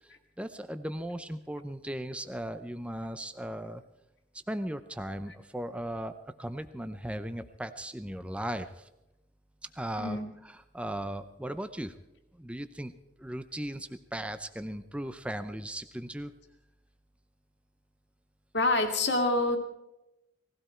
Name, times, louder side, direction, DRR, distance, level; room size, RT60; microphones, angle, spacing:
voice 1, 0.4-3.8 4.5-8.9 9.7-11.9 12.4-12.9 13.2-16.3, right 1 dB, 5° right, 10 dB, 0.6 m, -37 dB
voice 2, 18.5-19.6, left 2 dB, 65° left, 5 dB, 2.1 m, -26 dB
19.0 x 16.0 x 4.5 m, 0.92 s
head